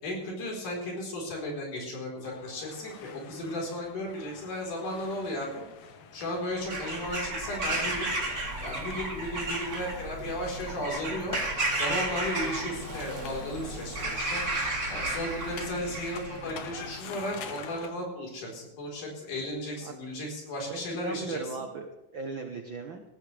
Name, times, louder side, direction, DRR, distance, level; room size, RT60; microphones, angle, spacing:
voice 1, 0.0-5.6 6.1-8.1 8.6-11.4 11.8-14.4 14.9-21.6, left 1 dB, 85° left, -1 dB, 5.7 m, -35 dB
sound 1, 2.2-17.9, left 6 dB, 65° left, 2.3 m, -46 dB
Bird vocalization bird call bird song / Crow, 6.5-16.4, right 2 dB, 30° right, 3.2 m, -33 dB
sound 2, 7.8-17.2, right 2 dB, 25° left, 1.5 m, -49 dB
voice 2, 20.7-23.0, right 4 dB, 70° right, 4 dB, 1.1 m, -38 dB
18.5 x 14.5 x 3.3 m, 0.98 s
omnidirectional pair, 3.5 m